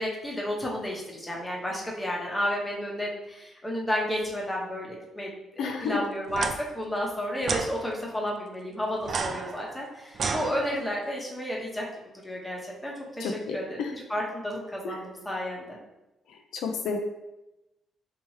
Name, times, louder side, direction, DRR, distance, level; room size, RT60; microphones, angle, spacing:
voice 1, 0.0-11.8 12.2-15.8, equal, 15° left, -2 dB, 0.9 m, -32 dB
voice 2, 5.6-6.0 13.2-13.9 14.8-15.0 16.3-17.0, left 5 dB, 80° left, 3 dB, 0.4 m, -31 dB
sound 1, 6.3-6.5 7.4-7.7 9.0-11.0, right 5 dB, 50° right, 0.3 m, -32 dB
3.3 x 3.0 x 3.1 m, 0.95 s
cardioid pair, 90°, 0 cm